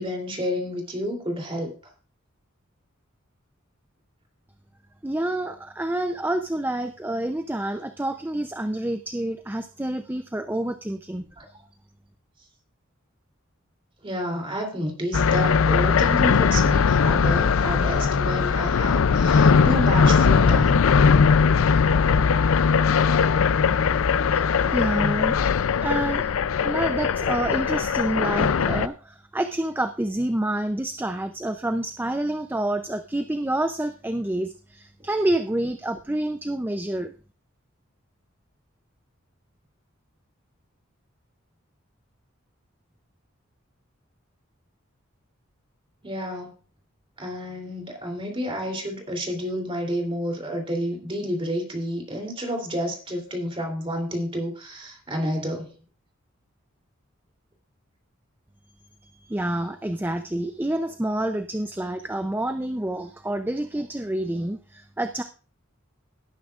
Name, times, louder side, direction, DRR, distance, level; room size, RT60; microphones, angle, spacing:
voice 1, 0.0-1.7 11.4-11.5 14.0-20.8 46.0-46.5 47.2-55.7, equal, 25° right, 3.1 m, -30 dB
voice 2, 5.0-11.2 24.3-26.4 26.6-37.1 59.0-65.2, right 1 dB, 10° right, 0.5 m, -28 dB
sound 1, 15.1-28.9, left 5 dB, 90° left, 0.5 m, -20 dB
17.5 x 9.7 x 2.5 m
head